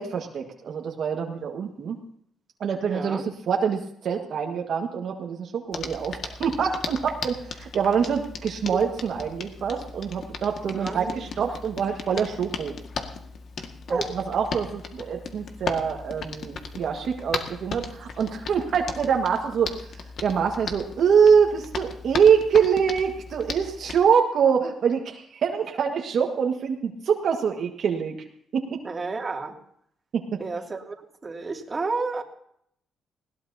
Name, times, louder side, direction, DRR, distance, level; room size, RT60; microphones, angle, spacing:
voice 1, 0.0-2.0 2.6-12.8 13.9-19.8 20.2-28.2 28.5-28.8 30.1-30.4, right 7 dB, 65° right, 1 dB, 1.8 m, -24 dB
voice 2, 2.9-3.2 8.7-8.8 10.7-11.1 13.9-14.1 28.8-29.6 30.4-30.9 31.2-32.2, right 4 dB, 30° right, 1 dB, 2.6 m, -30 dB
Hands, 5.7-24.0, left 5 dB, 60° left, 1.9 m, -37 dB
20.5 x 17.0 x 2.8 m, 0.69 s
cardioid pair, 90°, 0 cm